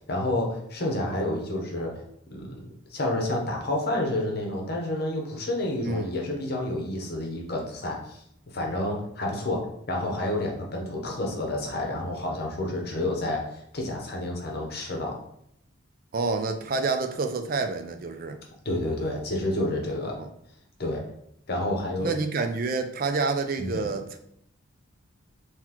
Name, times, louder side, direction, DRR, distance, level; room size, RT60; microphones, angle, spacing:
voice 1, 0.1-1.9 2.3-15.2 18.6-20.2 20.8-21.0 21.5-22.1 23.6-23.9, left 1 dB, 50° left, 0 dB, 0.8 m, -29 dB
voice 2, 16.1-18.4 20.2-20.3 22.0-24.2, right 3 dB, 45° right, 7 dB, 0.4 m, -28 dB
3.8 x 2.9 x 2.9 m, 0.74 s
head